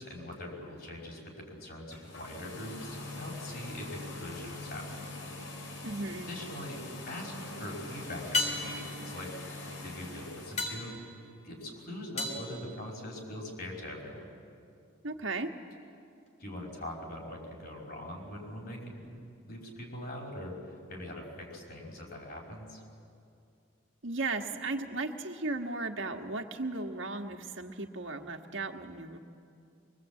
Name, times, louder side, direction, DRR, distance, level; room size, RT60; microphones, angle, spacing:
voice 1, 0.0-5.1 6.3-6.8 7.1-9.4 9.8-10.9 11.4-14.3 16.4-22.8, left 1 dB, 50° left, -1 dB, 5.6 m, -42 dB
sound 1, 1.8-10.7, left 2 dB, 85° left, 4.2 m, -43 dB
voice 2, 5.8-6.3 15.0-15.5 24.0-29.2, right 3 dB, 70° right, 4 dB, 1.6 m, -36 dB
sound 2, 8.3-13.5 17.9-18.0, left 2 dB, 35° left, 2.9 m, -37 dB
24.5 x 23.5 x 8.5 m, 2.4 s
head